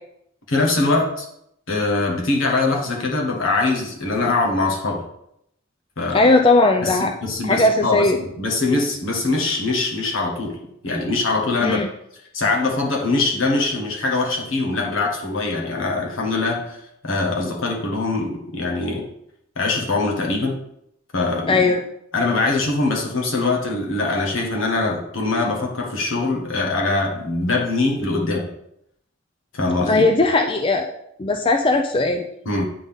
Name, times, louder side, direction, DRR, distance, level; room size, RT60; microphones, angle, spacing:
voice 1, 0.5-1.2 1.7-5.0 6.0-6.3 6.8-8.1 8.4-10.6 10.8-11.8 12.3-16.8 17.0-19.0 19.6-20.6 21.1-21.6 22.1-28.5 29.5-30.0 32.4-32.6, left 3 dB, 75° left, 0 dB, 1.4 m, -22 dB
voice 2, 6.1-7.1 7.4-8.2 11.6-11.9 21.5-21.8 29.9-30.9 31.2-32.3, left 2 dB, 25° left, 4 dB, 0.3 m, -18 dB
9.1 x 3.9 x 3.6 m, 0.76 s
head